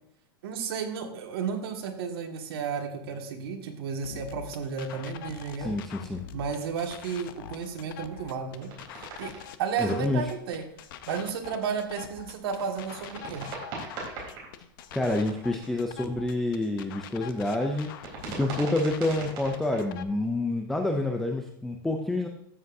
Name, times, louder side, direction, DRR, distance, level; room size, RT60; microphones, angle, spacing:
voice 1, 0.4-5.7 6.3-9.3 9.6-10.6 11.1-13.5, right 6 dB, 80° right, 3 dB, 1.8 m, -33 dB
sound 1, 4.0-20.0, left 9 dB, 60° left, 0.7 m, -44 dB
sound 2, 5.0-5.5 5.9-6.7 7.7-10.5 11.2-14.5 14.8-15.9 16.7-17.0 17.7-19.8, right 3 dB, 35° right, 3.6 m, -41 dB
voice 2, 5.6-6.2 9.8-10.3 14.9-17.9 18.4-22.3, left 2 dB, 5° left, 4 dB, 0.3 m, -28 dB
13.0 x 7.7 x 2.6 m, 0.70 s
supercardioid pair, 175°, 13 cm